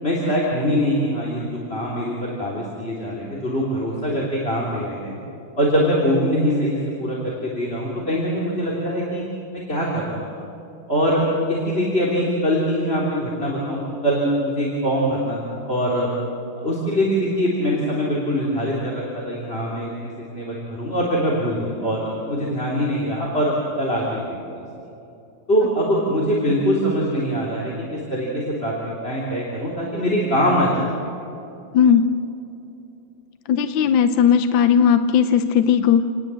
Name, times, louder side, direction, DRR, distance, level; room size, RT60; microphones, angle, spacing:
voice 1, 0.0-5.1 5.5-9.2 9.5-10.4 10.9-16.1 16.6-24.6 25.5-30.7, equal, 25° left, -4 dB, 3.5 m, -23 dB
voice 2, 31.7-32.1 33.5-36.0, left 8 dB, 70° left, 9 dB, 1.5 m, -17 dB
28.5 x 19.5 x 7.6 m, 2.8 s
omnidirectional pair, 2.3 m